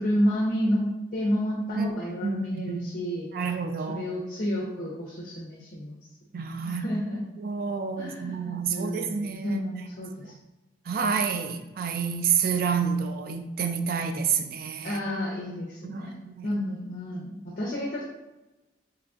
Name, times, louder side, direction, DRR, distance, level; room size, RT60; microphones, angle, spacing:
voice 1, 0.0-3.3 3.9-6.0 6.6-7.2 8.0-10.3 14.8-18.0, equal, 50° left, -5 dB, 0.6 m, -30 dB
voice 2, 2.2-2.9 3.3-4.1 6.3-6.8 7.4-9.6 10.9-15.0 15.8-16.5, right 6 dB, 50° right, 7 dB, 0.3 m, -29 dB
3.8 x 3.2 x 2.3 m, 1.0 s
head